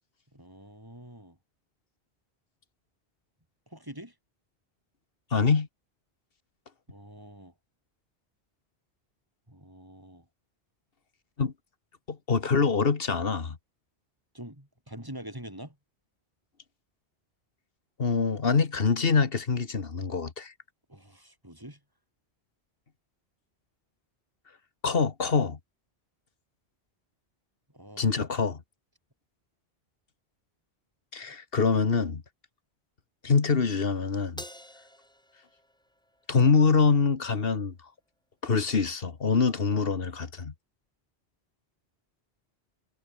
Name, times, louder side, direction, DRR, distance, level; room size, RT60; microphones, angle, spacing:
voice 1, 0.3-1.4 3.7-4.1 6.9-7.5 9.5-10.3 14.3-15.8 20.9-21.8 27.7-28.1, right 1 dB, 20° right, 5.2 m, -45 dB
voice 2, 5.3-5.7 11.4-11.5 12.1-13.6 18.0-20.5 24.8-25.6 28.0-28.6 31.1-32.2 33.2-34.4 36.3-37.7 38.4-40.5, left 5 dB, 60° left, 1.7 m, -25 dB
Crash cymbal, 34.4-36.9, equal, 5° left, 1.4 m, -48 dB
omnidirectional pair, 1.1 m